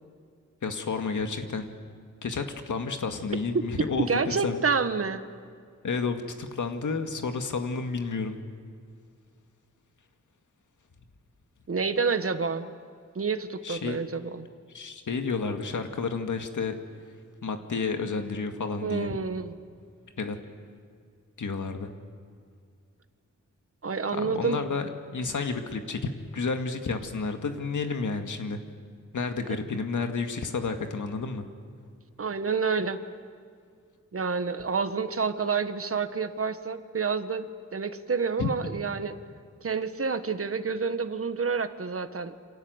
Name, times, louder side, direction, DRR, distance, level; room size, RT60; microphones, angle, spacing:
voice 1, 0.6-1.7 2.2-4.6 5.8-8.4 13.6-14.0 14.7-16.7 17.4-19.1 20.2-20.4 21.4-21.9 24.1-28.6 29.1-31.4 38.4-38.5, left 4 dB, 90° left, 6 dB, 2.2 m, -31 dB
voice 2, 4.1-5.2 11.7-12.7 13.1-14.5 18.8-19.6 23.8-24.6 29.5-29.6 32.2-33.0 34.1-39.1 39.6-42.3, right 5 dB, 50° right, 10 dB, 1.4 m, -28 dB
28.5 x 26.0 x 8.1 m, 2.2 s
wide cardioid pair, 135°, 30 cm